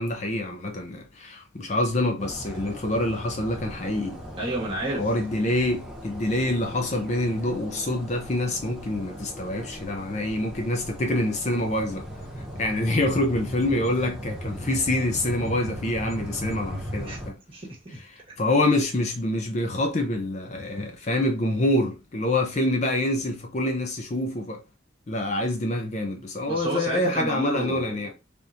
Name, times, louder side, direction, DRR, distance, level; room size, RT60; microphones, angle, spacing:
voice 1, 0.0-4.2 5.0-12.0 12.6-17.4 18.4-24.6 25.1-28.1, left 1 dB, 35° left, 0.5 m, -26 dB
sound 1, 2.2-17.3, equal, ahead, 0.8 m, -38 dB
voice 2, 4.4-5.1 17.1-17.2 17.5-18.0 26.5-28.0, right 1 dB, 25° right, 1.3 m, -31 dB
3.4 x 2.8 x 2.5 m
head